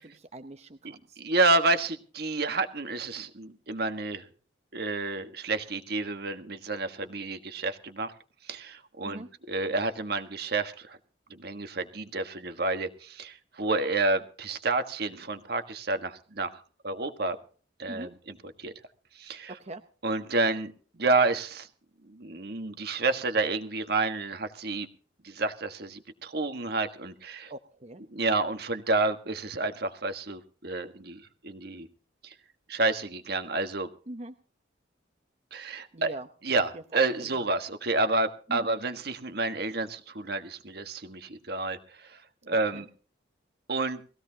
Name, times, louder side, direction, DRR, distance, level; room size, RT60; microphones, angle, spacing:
voice 1, 0.0-1.2 9.0-9.3 17.9-18.1 19.6-19.8 27.5-28.0 34.1-34.3 35.9-37.3 38.5-38.7 42.7-42.8, right 1 dB, 35° right, 7 dB, 0.8 m, -42 dB
voice 2, 0.8-4.2 4.7-8.1 8.5-11.0 11.3-17.4 17.8-18.7 19.2-19.5 20.0-20.7 21.0-21.7 22.0-24.9 25.2-27.5 28.1-31.9 32.2-32.3 32.7-33.9 35.5-36.1 36.4-42.2 42.5-42.9 43.7-44.0, right 3 dB, 55° right, 8 dB, 1.5 m, -30 dB
20.5 x 16.0 x 2.9 m, 0.41 s
head